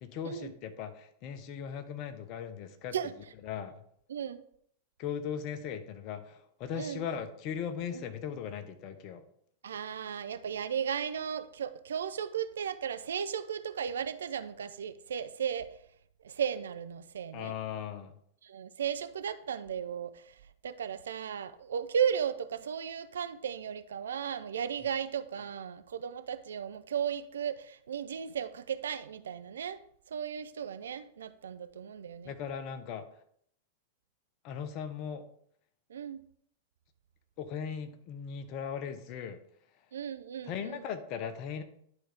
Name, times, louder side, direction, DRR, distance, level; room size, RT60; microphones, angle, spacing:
voice 1, 0.0-2.9 3.4-3.8 5.0-9.2 17.3-18.1 32.2-33.1 34.4-35.2 37.4-39.4 40.4-41.6, left 7 dB, 45° left, 0.8 m, -38 dB
voice 2, 4.1-4.4 6.8-7.0 7.9-8.0 9.6-15.7 16.2-17.5 18.4-20.3 20.6-29.8 30.1-32.3 35.9-36.2 39.9-40.8, right 8 dB, 75° right, 0.4 m, -35 dB
10.5 x 3.8 x 3.5 m
figure-of-eight pair, 95°, 0 cm